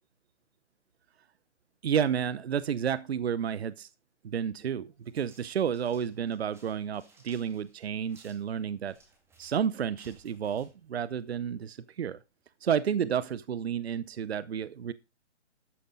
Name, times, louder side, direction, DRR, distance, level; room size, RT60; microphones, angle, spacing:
voice 1, 1.8-3.9 4.2-8.9 9.4-12.2 12.6-14.9, right 8 dB, 60° right, 0.8 m, -31 dB
sound 1, 5.0-11.6, right 3 dB, 5° right, 2.1 m, -61 dB
13.0 x 9.0 x 3.8 m
hypercardioid pair, 150°, 36 cm